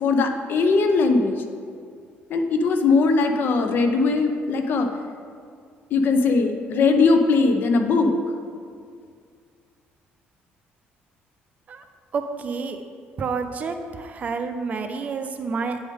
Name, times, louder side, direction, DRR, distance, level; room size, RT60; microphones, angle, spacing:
voice 1, 0.0-1.4 2.3-4.9 5.9-8.1, left 4 dB, 55° left, 6 dB, 0.6 m, -20 dB
voice 2, 12.1-12.8 13.2-15.8, right 5 dB, 40° right, 7 dB, 0.5 m, -29 dB
8.6 x 5.1 x 3.7 m, 2.2 s
cardioid pair, 130°, 4 cm